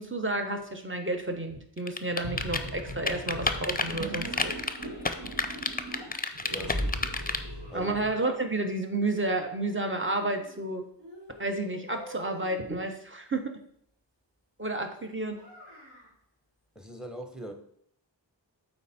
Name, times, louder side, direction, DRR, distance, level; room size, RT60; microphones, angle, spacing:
voice 1, 0.0-4.5 7.7-10.8 11.4-13.4 14.6-15.4, right 2 dB, 25° right, 5 dB, 1.1 m, -31 dB
sound 1, 1.8-7.4, left 3 dB, 20° left, 0.6 m, -29 dB
sound 2, 2.0-8.1, equal, 50° right, 2.2 m, -38 dB
Child speech kid speaking, 4.2-6.2 7.1-8.3 9.5-10.6 11.0-12.7 15.3-16.1, left 1 dB, 65° right, 2.9 m, -50 dB
voice 2, 6.5-7.0 7.7-8.0 16.7-17.5, right 2 dB, ahead, 5 dB, 1.1 m, -40 dB
8.1 x 4.5 x 4.3 m, 0.66 s
wide cardioid pair, 40°, 44 cm